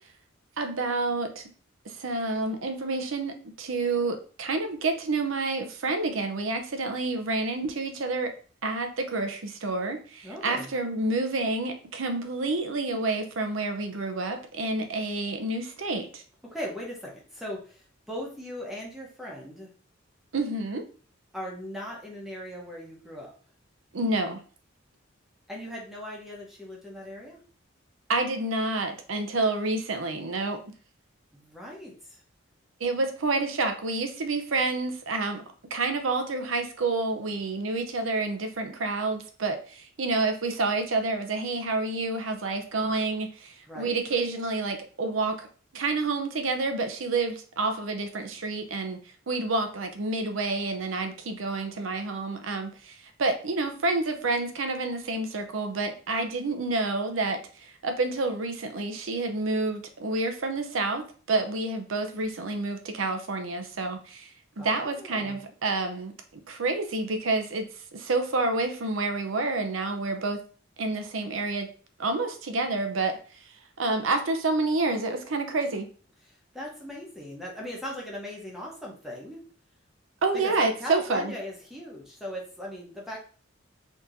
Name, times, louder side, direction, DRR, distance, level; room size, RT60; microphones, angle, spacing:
voice 1, 0.6-1.4 1.9-8.3 8.6-16.2 20.3-20.8 23.9-24.4 28.1-30.6 32.8-35.4 35.7-45.5 45.7-49.0 49.3-64.3 64.6-70.4 70.8-71.7 72.0-73.2 73.8-75.9 80.2-81.3, right 3 dB, 85° right, 6 dB, 0.7 m, -29 dB
voice 2, 10.2-10.7 16.4-19.7 21.3-23.3 25.5-27.4 31.3-32.2 43.7-44.0 64.6-65.4 76.3-79.4 80.3-83.2, equal, ahead, -3 dB, 1.1 m, -39 dB
4.4 x 3.0 x 2.6 m, 0.40 s
head